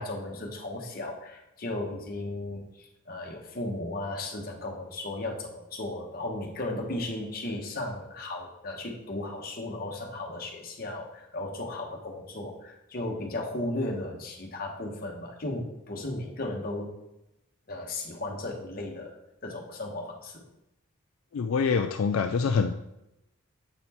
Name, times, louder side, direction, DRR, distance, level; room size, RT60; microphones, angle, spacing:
voice 1, 0.0-16.9 17.7-19.2 19.4-20.4, left 2 dB, 45° left, 0 dB, 1.2 m, -35 dB
voice 2, 21.3-22.7, left 5 dB, 75° left, 6 dB, 0.4 m, -25 dB
8.0 x 4.3 x 4.3 m, 0.90 s
head